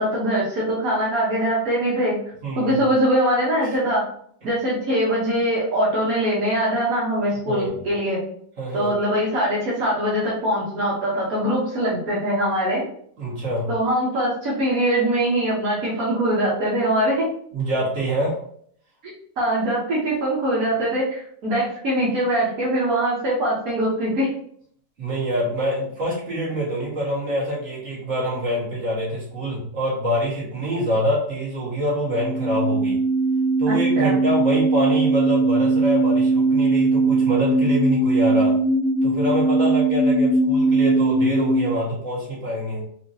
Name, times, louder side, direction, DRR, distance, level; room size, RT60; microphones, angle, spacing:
voice 1, 0.0-2.2 2.6-4.0 4.4-8.2 8.7-12.8 13.7-17.3 19.4-24.3 33.7-34.2, right 1 dB, 85° right, -6 dB, 1.5 m, -22 dB
voice 2, 2.4-2.8 7.5-7.8 8.6-8.9 13.2-13.7 17.5-18.4 25.0-33.0 33.6-38.6 39.0-42.8, equal, 55° right, -7 dB, 2.1 m, -25 dB
sound 1, 32.1-41.7, right 2 dB, 50° left, 0.8 m, -20 dB
4.9 x 2.7 x 2.7 m, 0.63 s
omnidirectional pair, 1.5 m